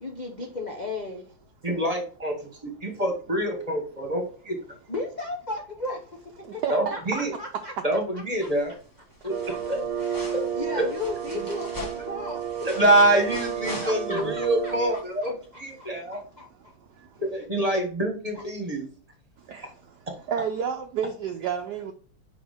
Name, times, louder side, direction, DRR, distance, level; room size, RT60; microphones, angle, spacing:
voice 1, 0.0-1.2 4.9-6.0 6.5-7.7 9.5-9.6 10.2-12.7 13.8-15.3 15.8-16.5, left 2 dB, 70° left, 0 dB, 0.4 m, -35 dB
voice 2, 1.6-4.6 6.7-7.3 7.8-8.7 9.2-9.8 10.3-10.4 10.7-10.9 12.6-16.2 17.2-18.9, right 1 dB, 20° right, 3 dB, 1.1 m, -25 dB
voice 3, 6.4-6.9 14.1-14.4 16.9-17.2 19.4-20.0 20.3-21.9, right 7 dB, 70° right, 4 dB, 1.1 m, -31 dB
sound 1, 8.3-8.9 9.1-14.4 14.8-14.9, left 1 dB, 15° left, 0.7 m, -42 dB
sound 2, 9.3-15.0, right 8 dB, 90° right, 1.5 m, -32 dB
5.4 x 5.1 x 3.5 m, 0.42 s
omnidirectional pair, 2.2 m